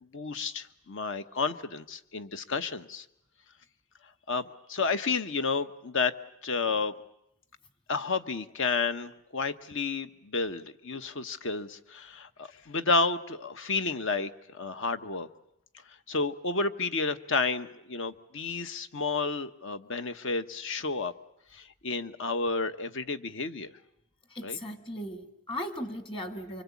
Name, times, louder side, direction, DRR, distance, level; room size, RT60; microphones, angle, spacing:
voice 1, 0.1-3.0 4.3-6.1 6.4-6.9 7.9-15.3 15.9-21.1 21.5-23.7 24.4-24.6, left 4 dB, 55° left, 11 dB, 1.0 m, -31 dB
voice 2, 24.3-26.6, left 1 dB, 25° left, 8 dB, 1.7 m, -37 dB
25.0 x 24.5 x 8.4 m, 0.80 s
head